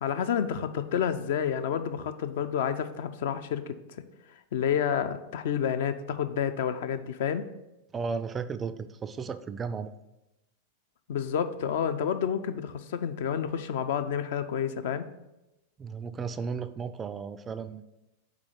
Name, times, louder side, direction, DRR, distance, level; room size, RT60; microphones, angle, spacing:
voice 1, 0.0-3.8 4.5-7.5 11.1-15.1, left 8 dB, 55° left, 10 dB, 0.4 m, -29 dB
voice 2, 7.9-9.9 15.8-17.8, right 5 dB, 20° right, 13 dB, 0.3 m, -34 dB
4.8 x 4.2 x 5.6 m, 0.94 s
figure-of-eight pair, 90°, 0 cm